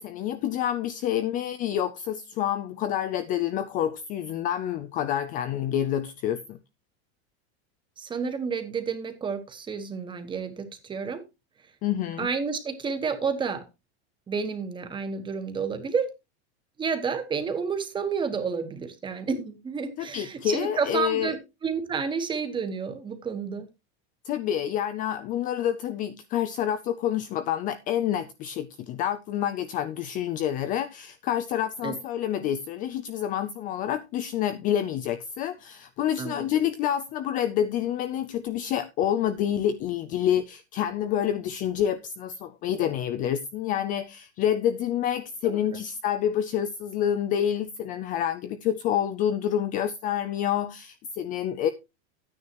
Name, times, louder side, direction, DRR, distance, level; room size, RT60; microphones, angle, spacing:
voice 1, 0.0-6.6 11.8-12.3 20.0-21.3 24.2-51.7, left 10 dB, 25° left, 0.4 m, -28 dB
voice 2, 8.0-11.2 12.2-13.6 14.3-16.1 16.8-23.7 31.8-31.9 36.2-36.5 45.4-45.8, right 5 dB, 15° right, 1.3 m, -30 dB
11.5 x 9.6 x 3.0 m
supercardioid pair, 160°, 34 cm